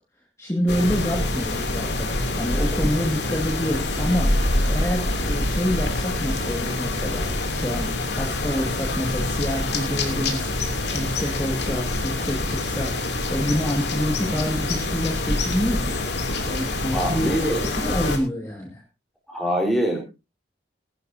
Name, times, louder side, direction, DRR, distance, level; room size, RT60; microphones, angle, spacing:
voice 1, 0.4-16.0 16.5-17.4 17.8-18.8, equal, 15° left, -1 dB, 2.1 m, -27 dB
sound 1, 0.7-18.2, left 2 dB, 65° left, 3.0 m, -26 dB
voice 2, 16.9-17.7 19.3-20.0, equal, ahead, -1 dB, 4.5 m, -24 dB
20.5 x 11.0 x 2.8 m, 0.28 s
head